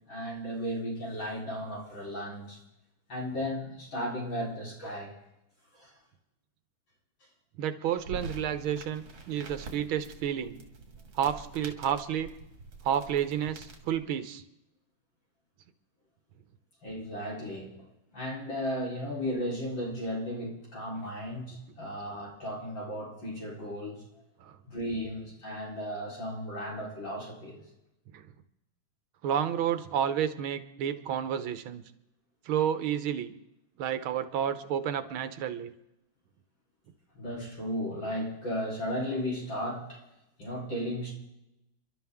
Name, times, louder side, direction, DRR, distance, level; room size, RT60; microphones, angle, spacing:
voice 1, 0.1-2.6 3.1-5.1 5.7-5.9 16.8-17.8 18.1-24.0 24.6-27.6 37.1-40.0 40.4-41.1, equal, 65° left, -3 dB, 4.7 m, -35 dB
voice 2, 7.6-10.6 11.1-12.3 12.8-14.4 24.4-24.6 28.1-28.3 29.2-31.8 32.5-33.3 33.8-35.7, right 9 dB, 85° right, 11 dB, 1.8 m, -30 dB
sound 1, 8.0-14.0, right 3 dB, 70° right, 2.9 m, -46 dB
29.0 x 12.0 x 3.6 m, 0.89 s
omnidirectional pair, 2.2 m